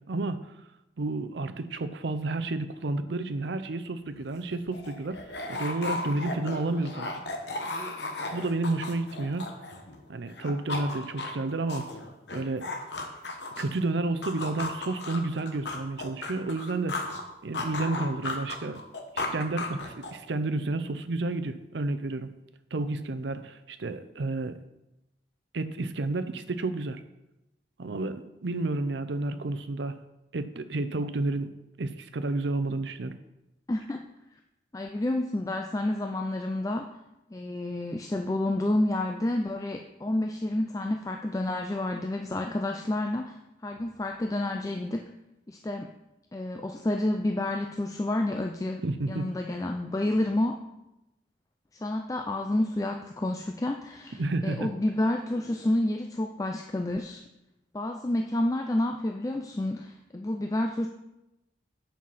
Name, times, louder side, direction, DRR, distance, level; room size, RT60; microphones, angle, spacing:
voice 1, 0.1-0.4 1.0-5.2 5.5-7.1 8.3-9.5 10.1-11.9 12.3-12.7 13.6-17.0 17.4-18.8 19.1-22.3 22.7-24.6 25.5-27.0 27.8-30.0 30.3-31.5 31.8-33.2 48.8-49.3 54.1-54.7, right 2 dB, 75° right, 11 dB, 0.6 m, -31 dB
sound 1, 4.1-4.2 4.5-10.0 10.3-13.8 14.2-17.2 17.5-20.3, left 2 dB, 75° left, 1.1 m, -35 dB
voice 2, 33.7-34.0 34.7-36.9 37.3-43.4 43.6-45.1 45.5-45.9 46.3-50.6 51.8-57.2 57.7-60.9, left 1 dB, 20° left, 4 dB, 0.4 m, -29 dB
7.6 x 5.7 x 5.7 m, 0.94 s
head